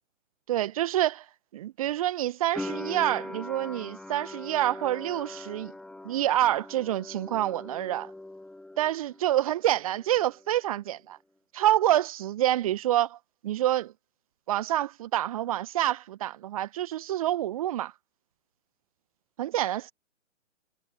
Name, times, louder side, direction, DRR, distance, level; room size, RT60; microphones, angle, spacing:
voice 1, 0.5-1.2 1.5-5.7 6.0-8.1 8.8-11.2 11.5-13.2 13.4-13.9 14.5-17.9 19.4-19.9, right 13 dB, 30° right, 1.3 m, -27 dB
sound 1, 2.5-9.4 9.6-10.5, left 2 dB, ahead, 1.5 m, -41 dB
figure-of-eight pair, 135°, 39 cm